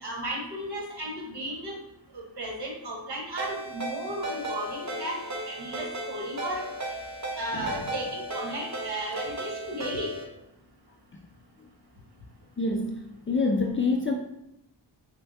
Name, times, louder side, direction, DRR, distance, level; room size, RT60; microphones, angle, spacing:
voice 1, 0.0-1.7 2.1-6.7 7.4-10.1, right 1 dB, 50° right, -1 dB, 1.5 m, -35 dB
Ringtone, 3.4-10.2, right 1 dB, 35° right, 1.1 m, -35 dB
voice 2, 12.6-13.0 13.3-14.1, left 3 dB, 25° left, 1 dB, 0.4 m, -26 dB
5.5 x 2.2 x 2.8 m, 0.83 s
supercardioid pair, 40°, 49 cm